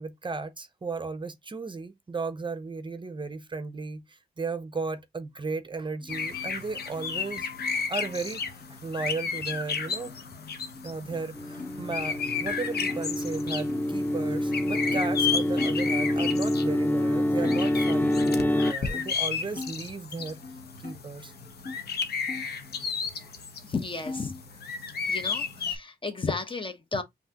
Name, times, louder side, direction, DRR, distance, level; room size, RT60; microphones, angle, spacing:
voice 1, 0.0-7.5 7.9-8.4 8.7-10.1 10.8-20.4 20.8-21.3, right 4 dB, 30° right, 0.6 m, -35 dB
sound 1, 6.0-11.7 12.0-13.0 13.6-16.5 17.0-17.1 17.4-19.8 20.2-21.8 22.2-23.3 23.6-24.5, left 3 dB, 55° left, 1.2 m, -44 dB
sound 2, 6.1-25.8, left 6 dB, 70° left, 0.8 m, -33 dB
sound 3, 11.4-18.7, left 1 dB, 10° left, 0.3 m, -27 dB
voice 2, 23.6-24.4 25.0-27.0, left 4 dB, 30° left, 0.9 m, -33 dB
5.4 x 2.8 x 2.8 m
cardioid pair, 70°, 17 cm